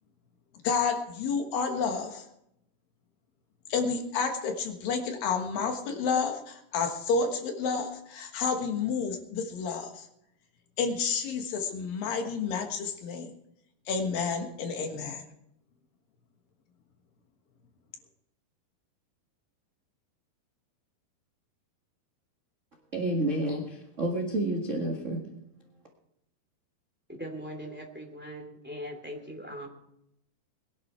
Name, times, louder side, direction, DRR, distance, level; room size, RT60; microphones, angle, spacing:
voice 1, 0.6-2.3 3.7-10.1 10.8-13.3 13.9-15.2, left 5 dB, 70° left, 3.1 m, -30 dB
voice 2, 22.9-25.2, right 1 dB, 35° right, 1.1 m, -29 dB
voice 3, 27.2-29.7, equal, 5° right, 2.0 m, -40 dB
21.5 x 11.0 x 4.4 m
omnidirectional pair, 4.4 m